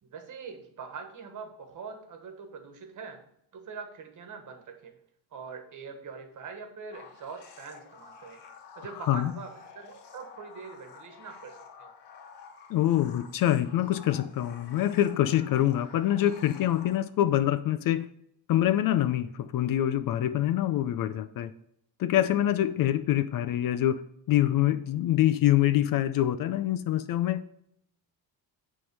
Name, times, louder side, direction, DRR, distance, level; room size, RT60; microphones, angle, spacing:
voice 1, 0.0-3.2 3.5-5.0 5.3-8.4 8.7-11.9, right 5 dB, 45° right, 1.4 m, -43 dB
sound 1, 6.9-17.3, left 6 dB, 75° left, 1.3 m, -50 dB
voice 2, 12.7-18.1 18.5-21.5 22.0-24.0 24.3-27.4, left 12 dB, 55° left, 0.5 m, -25 dB
9.6 x 3.8 x 5.3 m
cardioid pair, 150°, 41 cm